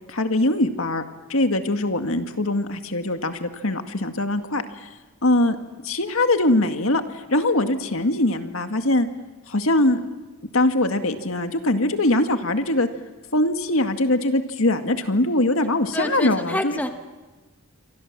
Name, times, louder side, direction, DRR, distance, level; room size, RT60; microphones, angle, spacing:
voice 1, 0.1-1.0 1.3-4.9 5.2-5.6 5.8-7.0 7.3-9.1 9.5-10.0 10.5-12.9 13.3-16.8, left 1 dB, 70° left, 7 dB, 2.1 m, -22 dB
voice 2, 15.9-16.9, left 1 dB, 5° left, 6 dB, 1.3 m, -27 dB
28.0 x 24.0 x 7.6 m, 1.3 s
head